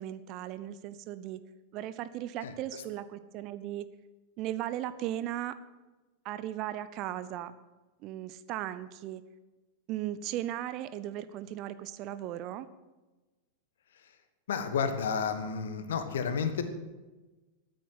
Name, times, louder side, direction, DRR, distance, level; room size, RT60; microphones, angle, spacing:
voice 1, 0.0-1.4 1.7-3.9 4.4-5.6 6.2-7.5 8.0-9.2 9.9-12.7, right 12 dB, 40° right, 14 dB, 0.8 m, -37 dB
voice 2, 14.5-16.6, left 6 dB, 60° left, 10 dB, 1.5 m, -31 dB
13.5 x 9.4 x 8.0 m, 1.2 s
figure-of-eight pair, 90°, 0 cm